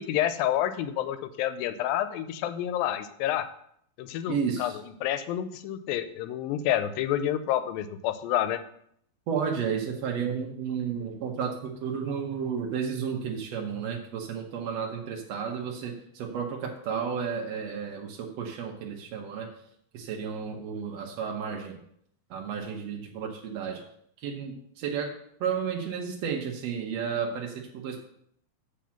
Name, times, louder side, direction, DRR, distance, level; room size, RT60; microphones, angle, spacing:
voice 1, 0.0-3.5 4.0-4.7 5.0-8.6, left 11 dB, 80° left, 11 dB, 2.3 m, -29 dB
voice 2, 4.3-4.8 9.3-19.5 19.9-21.8 22.3-23.8 24.2-25.1 25.4-28.0, right 6 dB, 80° right, 0 dB, 1.5 m, -32 dB
7.4 x 5.3 x 5.8 m, 0.69 s
omnidirectional pair, 4.3 m